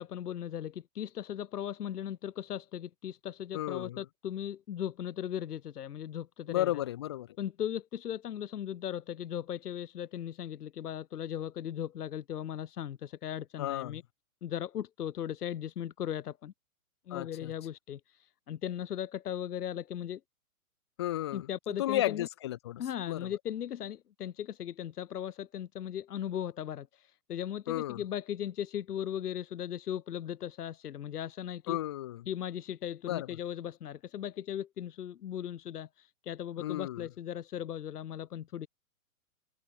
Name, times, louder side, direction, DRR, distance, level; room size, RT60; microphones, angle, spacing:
voice 1, 0.0-6.7 7.4-14.0 14.4-16.5 17.1-20.2 21.3-22.3 22.8-31.8 32.3-38.7, left 10 dB, 85° left, 0.9 m, -38 dB
voice 2, 3.5-4.0 6.5-7.4 13.6-14.0 17.1-17.5 21.0-21.5 21.8-23.3 27.7-28.0 31.7-32.3 33.1-33.3 36.6-37.1, left 14 dB, 20° left, 0.4 m, -33 dB
hypercardioid pair, 140°, 45 cm